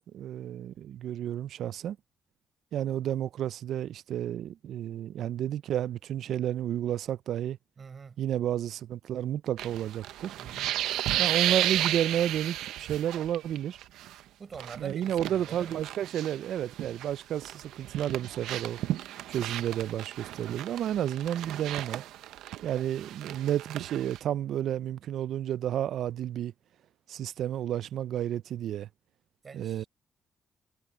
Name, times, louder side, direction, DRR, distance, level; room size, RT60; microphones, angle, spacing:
voice 1, 0.0-2.0 2.7-7.6 8.2-10.3 11.2-13.8 14.8-18.8 19.3-22.0 22.6-26.5 27.1-28.9 29.5-29.8, right 11 dB, 75° right, 0.4 m, -31 dB
voice 2, 7.8-8.2 10.4-10.8 14.4-15.8 22.7-22.9 29.4-29.9, right 5 dB, 40° right, 4.4 m, -46 dB
sound 1, 9.6-13.6 13.8-14.1 14.5-17.1 17.4-24.2, right 13 dB, 90° right, 0.8 m, -33 dB
cardioid pair, 90°, 0 cm